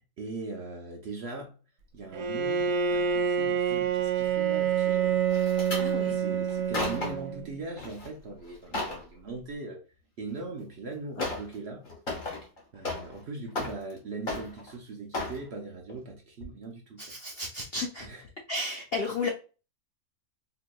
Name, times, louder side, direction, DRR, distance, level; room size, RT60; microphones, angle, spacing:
voice 1, 0.2-1.6 1.9-5.2 5.7-9.8 10.2-11.9 12.7-17.2 18.0-18.2, right 3 dB, 60° right, 0.7 m, -40 dB
Bowed string instrument, 2.1-7.6, right 7 dB, 85° right, 1.2 m, -27 dB
sound 1, 5.3-5.9 6.5-7.3 7.8-8.1 8.4-9.0 10.4-10.5 11.2-11.5 11.8-13.2 13.5-14.0 14.3-14.7 15.1-15.4 15.9-16.1 16.4-16.5, left 2 dB, 35° left, 1.3 m, -34 dB
voice 2, 5.8-6.2 11.2-11.3 17.0-18.1 18.5-19.3, left 3 dB, 65° left, 0.5 m, -33 dB
4.5 x 2.8 x 2.2 m
omnidirectional pair, 1.6 m